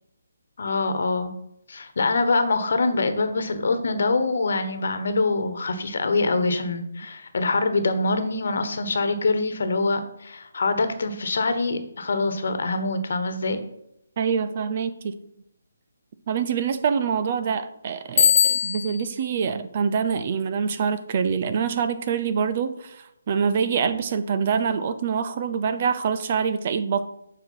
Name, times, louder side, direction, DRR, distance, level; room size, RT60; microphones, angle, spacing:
voice 1, 0.6-1.3 1.7-13.6, left 3 dB, 60° left, 9 dB, 1.3 m, -24 dB
voice 2, 14.2-15.1 16.3-27.1, right 6 dB, 40° right, 10 dB, 0.6 m, -25 dB
Bicycle bell, 18.2-19.1, left 8 dB, 45° left, 0.7 m, -20 dB
7.5 x 4.9 x 5.6 m, 0.80 s
figure-of-eight pair, 150°, 0 cm